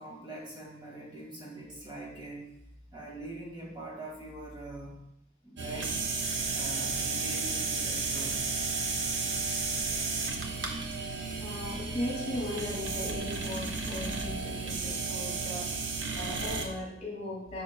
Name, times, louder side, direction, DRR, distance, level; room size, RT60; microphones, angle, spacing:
voice 1, 0.0-2.5 2.9-5.0 5.4-6.0 6.5-8.4, right 2 dB, 25° right, -4 dB, 1.8 m, -43 dB
sound 1, 5.6-16.7, right 4 dB, 70° right, 0.8 m, -33 dB
voice 2, 11.4-15.9 16.2-17.6, left 1 dB, 35° left, -3 dB, 2.1 m, -38 dB
8.4 x 5.7 x 2.3 m, 0.78 s
head